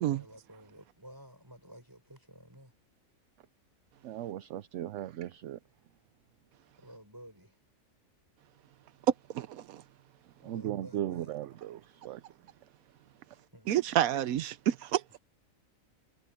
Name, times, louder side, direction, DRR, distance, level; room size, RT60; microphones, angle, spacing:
voice 1, 0.1-2.7 6.8-7.6 10.4-11.4 13.5-13.8, equal, 15° right, 5.9 m, -53 dB
voice 2, 4.0-5.6 10.4-12.2, right 12 dB, 65° right, 0.8 m, -37 dB
voice 3, 9.3-9.8 13.7-15.2, right 12 dB, 85° right, 1.1 m, -29 dB
omnidirectional pair, 1.5 m